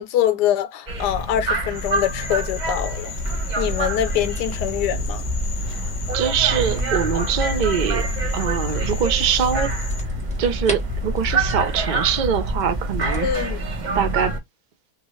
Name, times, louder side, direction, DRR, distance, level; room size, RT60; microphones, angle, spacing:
voice 1, 0.0-3.2 3.6-5.2 13.2-13.6, left 11 dB, 90° left, 1.2 m, -24 dB
sound 1, 0.9-14.4, right 2 dB, 40° right, 0.7 m, -27 dB
Frog, 1.7-10.1, left 7 dB, 65° left, 1.0 m, -38 dB
sound 2, 3.1-13.4, equal, 5° left, 0.7 m, -31 dB
voice 2, 6.1-8.1 8.3-9.7 10.4-13.5 13.9-14.3, right 8 dB, 85° right, 0.4 m, -23 dB
2.8 x 2.3 x 3.1 m
omnidirectional pair, 1.7 m